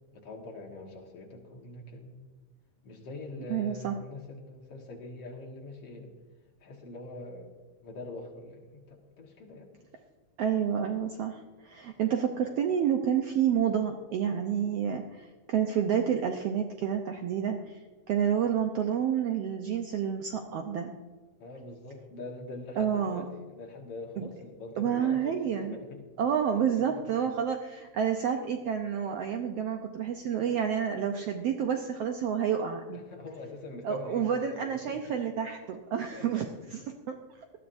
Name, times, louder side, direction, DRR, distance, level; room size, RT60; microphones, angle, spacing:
voice 1, 0.1-2.2 2.8-6.1 6.6-9.7 21.4-26.1 26.6-27.1 32.9-35.2 36.1-36.5, left 2 dB, 55° left, 1 dB, 2.2 m, -44 dB
voice 2, 3.5-3.9 10.4-17.6 18.1-20.9 22.8-23.2 24.2-24.3 24.8-25.8 26.2-33.0 33.8-36.4 37.1-37.2, right 8 dB, 75° right, 4 dB, 1.5 m, -29 dB
19.0 x 13.0 x 2.6 m, 1.3 s
omnidirectional pair, 3.5 m